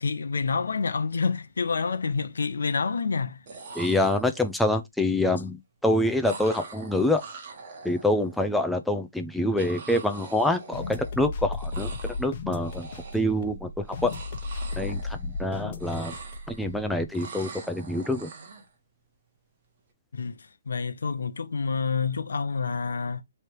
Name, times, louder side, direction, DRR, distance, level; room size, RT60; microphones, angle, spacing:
voice 1, 0.0-3.4 20.1-23.2, left 5 dB, 85° left, 0.7 m, -28 dB
sound 1, 1.2-1.3 1.6-2.2 3.2-3.3 3.5-4.7 6.2-8.4 9.6-11.3 11.5-12.3 12.6-13.4 13.8-15.5 15.7-16.8 17.1-18.7, right 4 dB, 45° right, 1.2 m, -44 dB
voice 2, 3.8-7.2 7.8-12.9 13.1-14.1 14.8-16.1 16.5-18.3, left 1 dB, ahead, 0.5 m, -26 dB
sound 2, 10.7-17.1, left 3 dB, 45° left, 0.9 m, -35 dB
3.3 x 2.8 x 4.6 m
hypercardioid pair, 155°, 0 cm